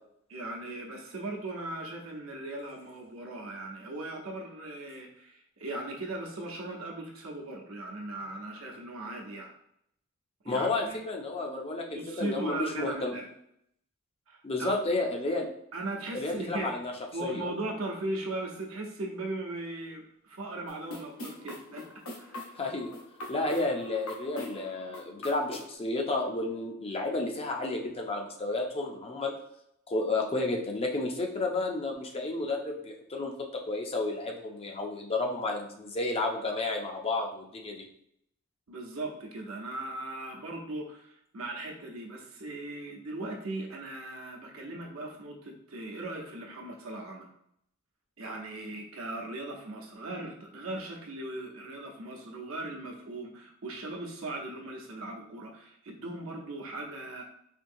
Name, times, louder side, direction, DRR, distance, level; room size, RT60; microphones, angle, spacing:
voice 1, 0.3-9.5 10.4-11.0 11.9-13.3 14.3-14.8 15.7-16.8 17.1-21.8 22.2-22.5 38.7-47.3 48.2-57.2, right 2 dB, 70° right, 0 dB, 0.8 m, -38 dB
voice 2, 10.5-13.1 14.4-15.5 16.1-16.9 17.2-17.5 22.6-22.9 23.3-29.4 29.9-33.3 33.7-37.8, left 2 dB, 30° left, 2 dB, 0.5 m, -31 dB
sound 1, 20.7-25.7, left 2 dB, 85° left, 0.8 m, -43 dB
4.4 x 2.7 x 2.6 m, 0.74 s
head